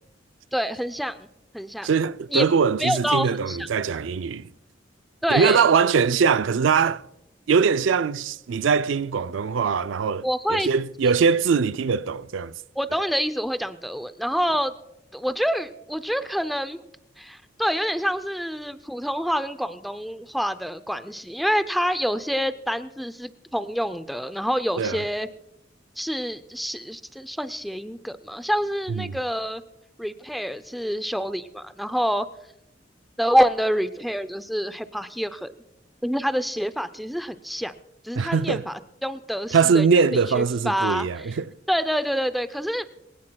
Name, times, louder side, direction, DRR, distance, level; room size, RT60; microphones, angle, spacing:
voice 1, 0.5-1.2 1.5-1.9 2.3-2.4 2.8-3.7 5.2-5.7 10.2-10.7 12.8-14.7 15.1-16.8 17.2-25.3 26.0-29.6 30.0-32.3 33.2-35.5 36.0-37.7 38.0-40.1 40.4-41.4 41.7-42.9, equal, ahead, 0.5 m, -27 dB
voice 2, 1.8-4.5 5.3-7.0 7.5-12.5 24.8-25.0 28.9-29.2 38.2-38.6 39.5-41.5, right 5 dB, 85° right, 0.4 m, -22 dB
22.5 x 17.0 x 2.3 m
head